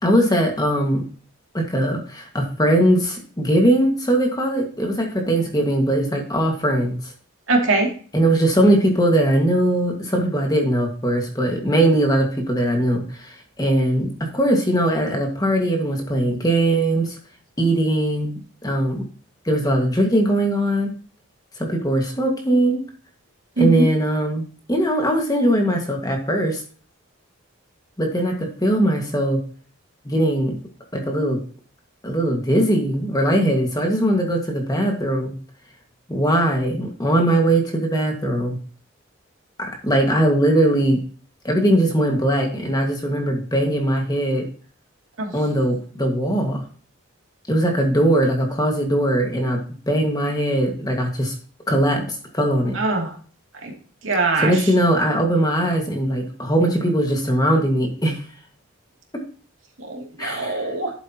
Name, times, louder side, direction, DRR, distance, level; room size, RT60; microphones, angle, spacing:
voice 1, 0.0-1.0 1.5-7.1 8.1-17.2 17.6-19.0 19.5-20.9 21.6-22.8 23.6-26.6 28.0-29.4 30.1-30.6 30.9-31.4 32.0-35.3 36.1-38.6 39.6-41.0 41.4-44.5 45.3-46.6 47.5-49.6 49.9-51.3 51.7-52.1 52.3-52.8 54.4-58.2 60.2-60.7, right 1 dB, 20° left, 2 dB, 1.9 m, -20 dB
voice 2, 7.5-7.9 23.6-23.9 45.2-45.3 52.7-53.1 53.6-53.7 54.0-54.5 59.9-60.9, right 3 dB, 70° right, 0 dB, 2.8 m, -21 dB
12.0 x 8.0 x 3.0 m, 0.41 s
head